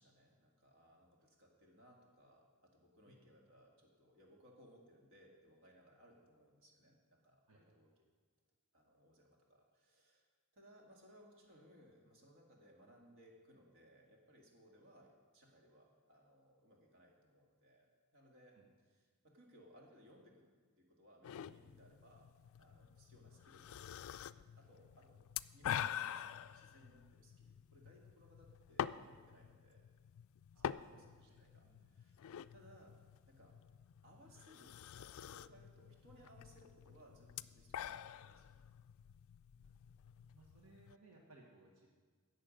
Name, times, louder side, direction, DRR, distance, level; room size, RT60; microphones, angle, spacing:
voice 1, 0.0-7.9 8.7-10.3 10.5-17.9 18.1-18.6 18.9-20.5 20.8-22.3 22.6-25.2 25.5-29.8 30.6-32.2 32.5-33.0 33.3-33.6 34.0-38.7, equal, 60° right, 0 dB, 1.9 m, -65 dB
sound 1, 21.2-41.0, left 9 dB, 65° left, 0.3 m, -47 dB
voice 2, 30.5-31.9 39.6-41.9, right 2 dB, 80° right, -1 dB, 1.4 m, -65 dB
16.5 x 6.7 x 5.1 m, 1.5 s
head